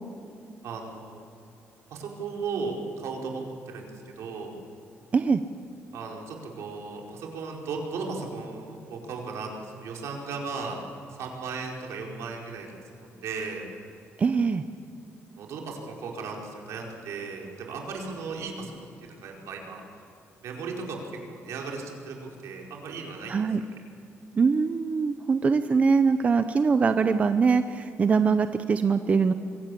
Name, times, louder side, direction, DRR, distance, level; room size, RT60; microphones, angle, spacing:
voice 1, 0.6-1.2 1.9-4.6 5.9-10.8 11.1-12.7 13.0-13.7 15.4-18.9 19.2-19.8 20.4-22.2 22.4-23.5 26.2-26.3, right 4 dB, 75° right, 0 dB, 4.7 m, -36 dB
voice 2, 14.2-14.6 23.3-23.6 24.4-29.3, right 5 dB, 30° right, 10 dB, 0.7 m, -22 dB
24.5 x 17.5 x 8.5 m, 2.6 s
cardioid pair, 155°, 5 cm